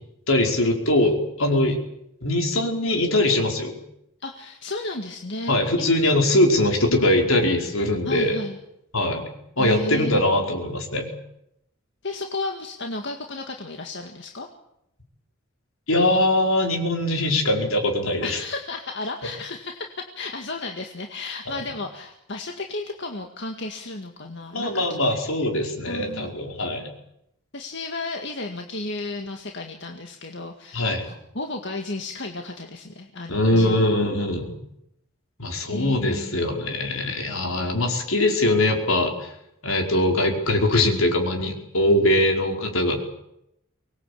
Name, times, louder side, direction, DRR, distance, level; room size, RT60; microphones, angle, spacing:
voice 1, 0.3-1.8 2.2-3.8 5.5-8.4 8.9-9.2 9.6-11.1 15.9-18.4 24.5-26.9 30.7-31.1 33.3-34.5 35.4-39.1 39.6-43.0, left 1 dB, 80° left, 2 dB, 5.0 m, -22 dB
voice 2, 4.2-6.1 8.1-8.6 9.6-10.3 12.0-14.5 18.2-25.0 25.8-26.3 27.5-33.8 35.7-36.4, left 2 dB, 55° left, 3 dB, 2.0 m, -33 dB
24.5 x 20.0 x 8.7 m, 0.81 s
head